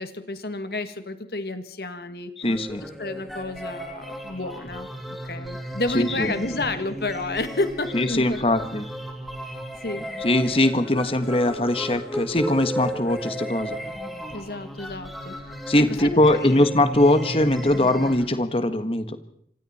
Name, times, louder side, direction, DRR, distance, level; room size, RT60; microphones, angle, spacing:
voice 1, 0.0-2.3 2.8-4.9 5.2-8.6 9.8-10.1 14.3-15.4 15.8-16.7, left 2 dB, 60° left, 9 dB, 1.9 m, -30 dB
voice 2, 2.4-2.8 5.9-6.3 7.9-8.9 10.2-13.8 15.7-19.0, left 1 dB, 35° left, 10 dB, 1.5 m, -21 dB
sound 1, 2.4-18.3, equal, ahead, 3.2 m, -35 dB
26.0 x 26.0 x 4.4 m, 0.66 s
head